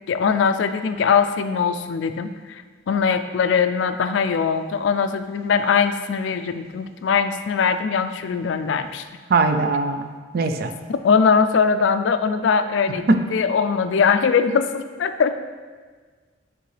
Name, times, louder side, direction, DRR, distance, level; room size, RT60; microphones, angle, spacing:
voice 1, 0.1-9.0 10.9-15.3, left 6 dB, 65° left, 9 dB, 0.3 m, -21 dB
voice 2, 9.3-10.1 10.3-10.7 13.1-13.2, right 3 dB, 50° right, 7 dB, 0.4 m, -19 dB
9.2 x 3.7 x 3.3 m, 1.5 s
head